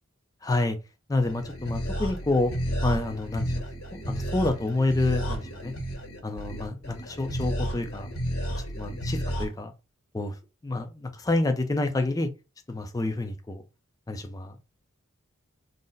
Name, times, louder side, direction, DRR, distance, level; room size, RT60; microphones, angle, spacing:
voice 1, 0.4-0.8 1.1-2.5 2.8-3.6 4.1-5.7 6.2-8.1 8.7-9.7 10.1-10.4 10.6-12.3 12.7-13.6 14.1-14.6, left 2 dB, 15° left, 0.4 m, -28 dB
sound 1, 1.2-9.4, equal, 80° left, 1.3 m, -32 dB
3.8 x 2.0 x 3.8 m
head